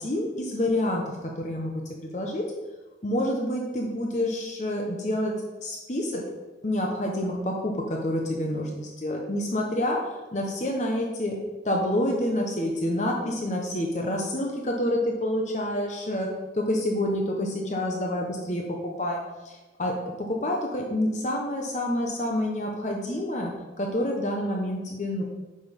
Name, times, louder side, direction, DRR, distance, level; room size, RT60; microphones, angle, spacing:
voice 1, 0.0-1.7 2.1-2.5 3.0-5.4 5.6-6.2 6.6-11.4 11.6-16.3 16.5-18.6 19.0-19.2 19.4-19.9 20.2-23.5 23.8-25.2, left 1 dB, 40° left, 0 dB, 1.1 m, -28 dB
9.1 x 6.1 x 5.3 m, 1.2 s
head